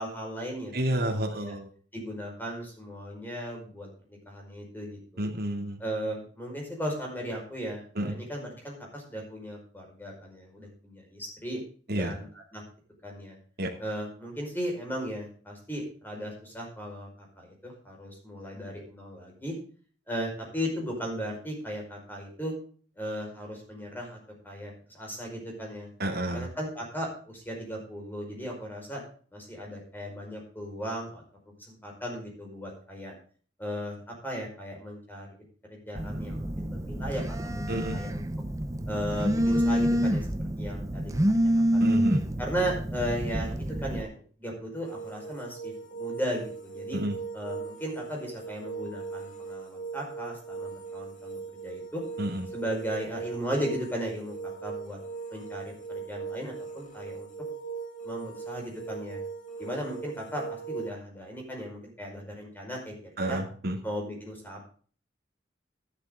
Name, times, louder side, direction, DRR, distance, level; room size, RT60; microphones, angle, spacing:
voice 1, 0.0-1.5 1.9-5.2 5.8-11.6 11.9-12.6 13.0-13.4 13.8-17.1 17.4-19.5 20.1-22.5 23.0-24.2 24.4-25.9 26.3-29.0 29.3-31.2 31.7-33.1 33.6-35.4 35.7-38.2 38.9-40.3 40.6-41.9 42.4-44.1 44.4-47.0 47.3-52.0 52.5-55.0 55.3-57.3 58.0-59.2 59.6-62.9 63.2-63.4 63.8-64.6, equal, 10° left, 0 dB, 5.2 m, -36 dB
voice 2, 0.7-1.7 5.2-5.8 8.0-8.2 11.9-12.1 13.6-13.7 26.0-26.5 37.7-38.0 41.8-42.2 46.9-47.2 52.2-52.4 63.2-63.8, right 1 dB, 55° right, 2 dB, 2.6 m, -30 dB
Telephone, 36.0-44.0, equal, 15° right, 0.9 m, -27 dB
sound 1, 44.8-60.9, right 5 dB, 45° left, 2.5 m, -39 dB
12.0 x 11.5 x 3.8 m, 0.43 s
head